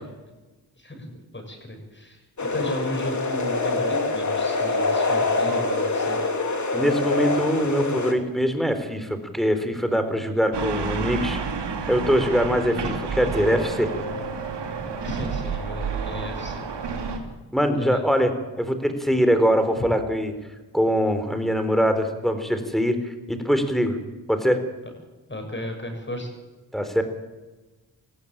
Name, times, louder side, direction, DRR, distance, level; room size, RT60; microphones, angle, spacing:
voice 1, 0.8-6.2 15.0-17.1 17.7-18.0 25.3-26.3, equal, 25° left, 3 dB, 7.4 m, -34 dB
sound 1, 2.4-8.1, left 3 dB, 45° left, 3.1 m, -25 dB
voice 2, 6.7-11.4 11.9-13.9 17.5-18.3 18.6-20.3 20.7-24.0 24.3-24.6 26.7-27.0, equal, ahead, 8 dB, 4.0 m, -23 dB
sound 2, 10.5-17.2, right 5 dB, 75° right, 3.0 m, -30 dB
20.0 x 15.0 x 9.0 m, 1.2 s
cardioid pair, 55°, 42 cm